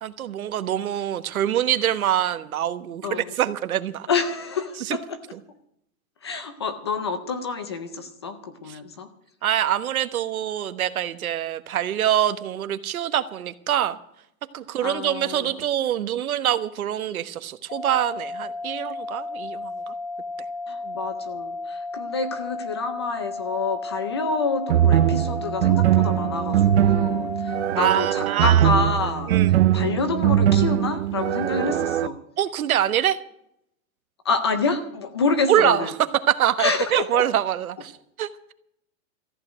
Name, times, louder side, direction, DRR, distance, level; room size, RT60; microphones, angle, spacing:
voice 1, 0.0-4.1 4.9-5.0 8.7-8.8 9.4-14.0 14.5-19.9 20.8-21.0 27.7-28.7 29.3-29.5 32.4-33.2 35.5-35.9 36.3-37.9 38.2-38.3, right 11 dB, 85° right, 12 dB, 1.3 m, -24 dB
voice 2, 3.0-3.3 4.1-5.2 6.2-9.1 14.8-15.6 20.7-29.3 29.7-32.2 34.2-35.9 36.6-37.3, left 4 dB, 20° left, 11 dB, 0.5 m, -28 dB
sound 1, 17.7-27.7, left 3 dB, 45° left, 2.4 m, -33 dB
sound 2, 24.7-32.1, right 11 dB, 55° right, 0.7 m, -21 dB
14.5 x 8.2 x 8.9 m, 0.74 s
supercardioid pair, 175°, 42 cm